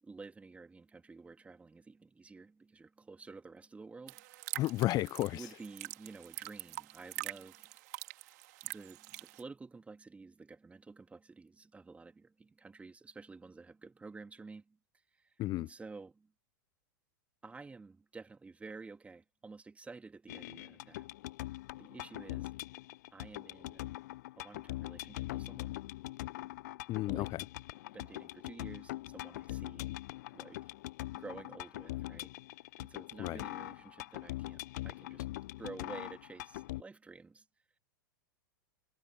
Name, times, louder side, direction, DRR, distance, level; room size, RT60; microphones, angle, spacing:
voice 1, 0.0-4.6 5.3-7.7 8.6-14.8 15.1-16.3 17.4-21.1 21.8-22.5 23.1-23.9 24.4-25.8 27.0-27.3 27.9-29.9 30.3-30.7 31.1-32.3 32.8-35.3 35.6-37.4, right 4 dB, 10° right, 3.2 m, -51 dB
sound 1, 4.1-9.4, right 19 dB, 55° right, 2.8 m, -45 dB
voice 2, 4.5-5.4 15.4-15.7 26.9-27.4 33.2-33.4, left 17 dB, 35° left, 0.9 m, -33 dB
sound 2, 20.3-36.8, left 17 dB, 55° left, 0.5 m, -42 dB
figure-of-eight pair, 90°, 11 cm